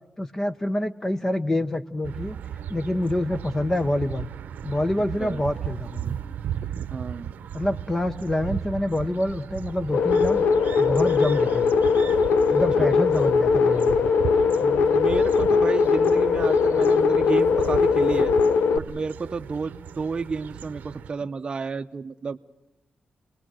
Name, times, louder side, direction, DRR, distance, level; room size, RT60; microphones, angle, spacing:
voice 1, 0.2-2.4 2.7-4.3 4.6-6.2 7.5-10.4 10.8-11.7 12.5-14.1, left 1 dB, 15° left, 11 dB, 0.7 m, -26 dB
sound 1, 2.0-21.1, right 9 dB, 85° right, 0.8 m, -36 dB
voice 2, 6.9-7.3 12.8-12.9 14.6-18.3 18.7-22.4, right 4 dB, 30° right, 5 dB, 0.7 m, -31 dB
sound 2, 9.9-18.8, left 5 dB, 80° left, 0.9 m, -20 dB
29.0 x 20.0 x 6.2 m, 0.93 s
wide cardioid pair, 160°, 3 cm